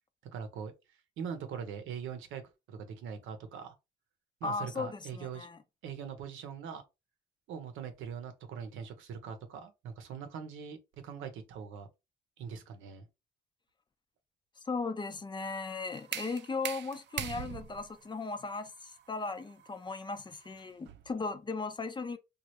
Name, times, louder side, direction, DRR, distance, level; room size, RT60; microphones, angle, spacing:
voice 1, 0.3-0.7 1.2-2.4 2.7-3.8 4.4-5.5 5.8-6.8 7.5-10.8 11.0-11.9 12.4-13.0, right 7 dB, 90° right, 0.7 m, -42 dB
voice 2, 4.4-5.6 14.7-22.2, left 4 dB, 25° left, 0.4 m, -37 dB
sound 1, 15.4-21.2, right 10 dB, 60° right, 0.4 m, -43 dB
3.1 x 2.3 x 2.9 m
cardioid pair, 90°, 20 cm